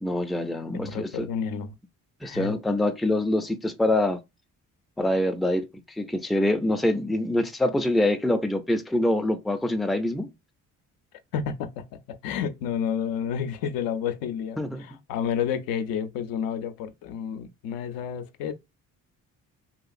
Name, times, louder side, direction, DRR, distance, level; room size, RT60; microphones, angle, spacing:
voice 1, 0.0-1.3 2.2-4.2 5.0-10.3 14.6-14.8, left 1 dB, ahead, 0.4 m, -25 dB
voice 2, 0.7-1.8 2.2-2.6 11.3-18.5, left 8 dB, 85° left, 0.5 m, -30 dB
2.8 x 2.3 x 2.5 m
supercardioid pair, 70°, 34 cm